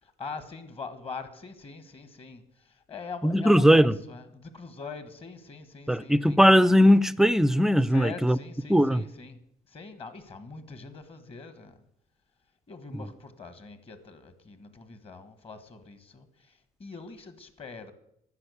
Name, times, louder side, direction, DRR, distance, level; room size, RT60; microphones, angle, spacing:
voice 1, 0.0-6.4 7.9-9.4 9.7-11.8 12.7-17.9, left 4 dB, 35° left, 1.5 m, -43 dB
voice 2, 3.2-3.9 5.9-8.4 8.7-9.0, equal, 5° right, 0.4 m, -19 dB
11.5 x 6.4 x 8.3 m
cardioid pair, 110°, 17 cm